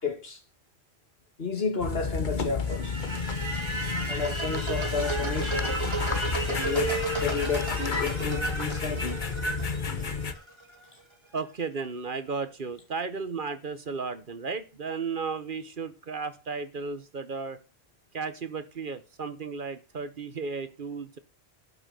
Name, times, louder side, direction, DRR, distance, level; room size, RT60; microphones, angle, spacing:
voice 1, 0.0-0.4 1.4-3.0 4.1-5.8 6.5-9.2, left 5 dB, 65° left, 2.5 m, -32 dB
sound 1, 1.8-10.3, left 5 dB, 50° left, 1.2 m, -31 dB
sound 2, 2.6-10.7, right 2 dB, 25° right, 2.1 m, -33 dB
voice 2, 11.3-17.6 18.1-21.2, right 4 dB, 55° right, 1.2 m, -34 dB
12.0 x 6.3 x 6.7 m
omnidirectional pair, 1.1 m